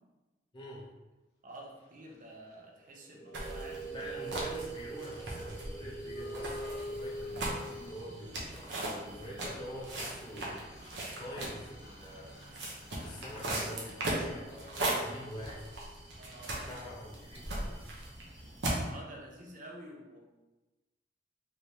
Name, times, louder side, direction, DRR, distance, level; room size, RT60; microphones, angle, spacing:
voice 1, 0.5-0.9 3.9-10.7 11.2-12.4 13.0-15.6 16.5-17.8, equal, 25° left, -5 dB, 0.6 m, -45 dB
voice 2, 1.4-4.1 16.2-17.0 18.8-20.2, right 1 dB, 45° right, 0 dB, 0.6 m, -49 dB
sound 1, 2.9-8.3 10.2-10.3 10.4-15.9, right 2 dB, 65° left, 0.7 m, -45 dB
sound 2, 3.3-18.9, right 1 dB, 75° right, 0.8 m, -39 dB
3.2 x 3.2 x 2.7 m, 1.1 s
head